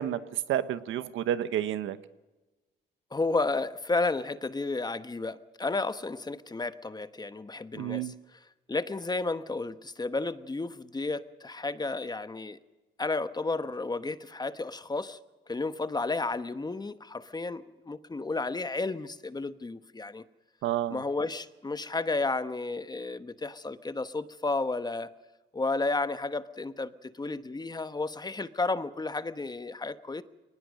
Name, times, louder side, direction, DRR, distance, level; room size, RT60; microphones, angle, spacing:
voice 1, 0.0-2.0 7.7-8.1 20.6-21.0, right 11 dB, 85° right, 13 dB, 1.1 m, -30 dB
voice 2, 3.1-8.1 8.7-12.6 13.0-15.2 15.5-20.2 20.9-25.1 25.5-30.2, left 3 dB, 20° left, 12 dB, 1.1 m, -32 dB
22.5 x 19.5 x 6.5 m, 1.1 s
cardioid pair, 90°, 20 cm